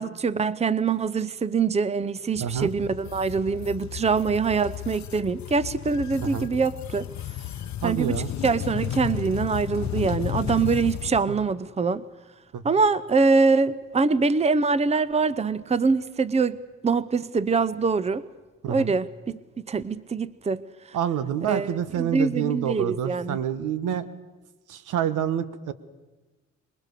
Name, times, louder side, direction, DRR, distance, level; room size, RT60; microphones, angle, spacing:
voice 1, 0.0-7.1 7.8-12.1 12.6-18.2 18.7-20.6 20.9-21.0 21.4-23.4, right 4 dB, 20° right, 0.8 m, -24 dB
sound 1, 2.3-11.2, left 12 dB, 65° left, 0.8 m, -33 dB
voice 2, 7.8-8.3 11.3-11.4 12.5-12.8 18.6-18.9 20.9-24.0 24.7-25.7, right 9 dB, 80° right, 1.3 m, -28 dB
25.0 x 21.5 x 6.8 m
cardioid pair, 90°, 30 cm